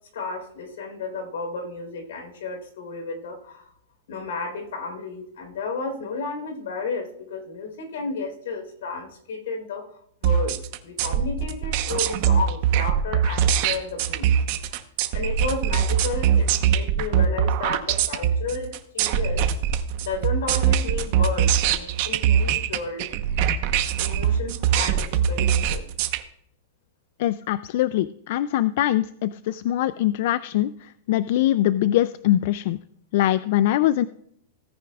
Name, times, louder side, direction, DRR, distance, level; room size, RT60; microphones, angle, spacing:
voice 1, 0.1-3.7 4.1-9.9 10.2-14.3 15.1-19.6 20.0-23.2 24.0-25.9, left 4 dB, 80° left, 4 dB, 3.9 m, -32 dB
sound 1, 10.2-26.2, right 8 dB, 45° right, 0.9 m, -22 dB
voice 2, 27.2-32.8 33.1-34.0, left 13 dB, 55° left, 15 dB, 0.3 m, -22 dB
17.0 x 9.4 x 2.4 m, 0.70 s
supercardioid pair, 160°, 0 cm